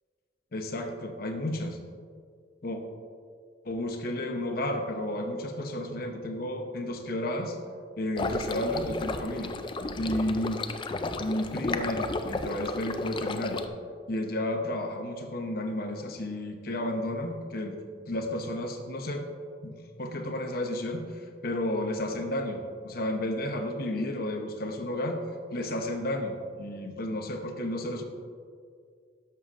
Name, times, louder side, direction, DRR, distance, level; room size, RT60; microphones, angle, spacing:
voice 1, 0.5-1.8 2.6-2.8 3.6-7.6 8.0-9.5 10.0-10.6 11.2-13.6 14.1-17.8 18.1-19.2 19.6-21.0 21.4-25.2 25.5-28.0, left 1 dB, 55° left, 4 dB, 0.8 m, -32 dB
sound 1, 8.2-13.7, left 3 dB, 25° left, 0.4 m, -33 dB
11.0 x 6.8 x 2.5 m, 2.1 s
head